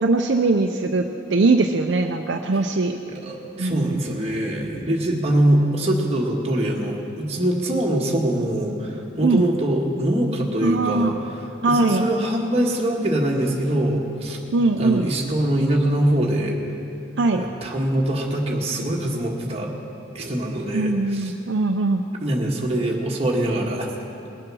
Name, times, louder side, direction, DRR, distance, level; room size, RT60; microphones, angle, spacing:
voice 1, 0.0-1.0 1.3-3.0 3.6-4.0 9.2-9.4 10.6-11.1 11.6-12.1 14.5-15.1 17.2-17.5 20.7-22.0, right 3 dB, 65° right, 4 dB, 0.5 m, -21 dB
voice 2, 3.1-11.1 11.7-14.4 14.8-16.6 17.3-19.7 20.1-21.3 22.2-23.9, right 1 dB, 30° right, -1 dB, 1.6 m, -23 dB
20.0 x 7.7 x 6.2 m, 2.7 s
head